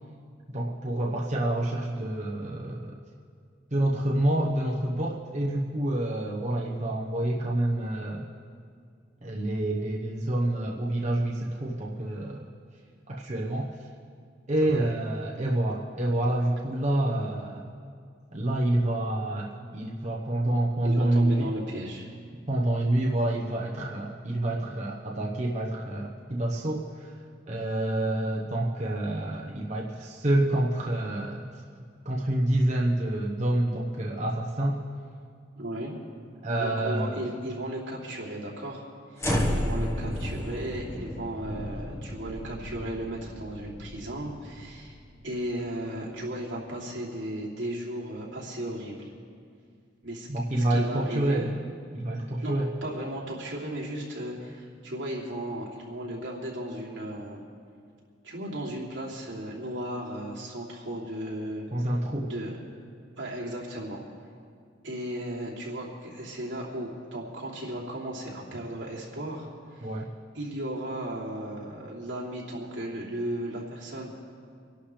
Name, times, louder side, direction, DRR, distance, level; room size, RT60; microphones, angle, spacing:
voice 1, 0.5-3.0 3.7-8.3 9.2-12.5 13.1-13.7 14.5-17.7 18.3-21.5 22.5-27.1 27.5-31.4 32.0-34.8 36.4-37.2 39.3-39.6 50.3-51.5 51.9-52.7 61.7-62.3 69.8-70.1, right 1 dB, 40° right, -3 dB, 1.1 m, -28 dB
voice 2, 14.6-15.0 20.8-22.1 35.6-35.9 36.6-38.8 39.1-45.0 45.2-49.1 50.0-50.3 50.6-51.5 52.4-52.5 52.8-57.4 58.2-61.7 62.2-62.6 63.2-64.0 64.8-69.9 70.3-74.1, right 1 dB, 85° right, -5 dB, 2.9 m, -35 dB
sound 1, 39.2-45.5, left 1 dB, 15° left, 1.3 m, -32 dB
26.0 x 11.5 x 3.4 m, 2.2 s
head